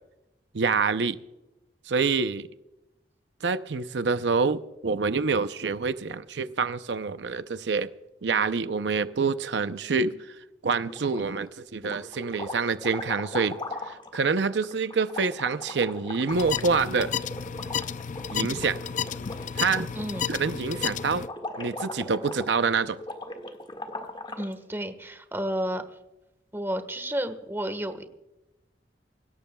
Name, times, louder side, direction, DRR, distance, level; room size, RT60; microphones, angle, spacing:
voice 1, 0.5-1.2 1.9-2.5 3.4-7.9 8.2-10.4 10.6-13.6 13.8-17.1 18.3-18.8 19.5-19.9 20.3-21.3 21.6-23.0, right 4 dB, 90° right, 0.6 m, -26 dB
sound 1, 10.9-11.5 11.8-24.5, left 2 dB, 30° left, 1.8 m, -39 dB
sound 2, 16.3-21.3, left 7 dB, 45° left, 0.5 m, -32 dB
voice 2, 19.9-20.3 24.4-25.8 26.5-28.0, equal, 15° right, 1.4 m, -31 dB
25.5 x 17.0 x 2.3 m
head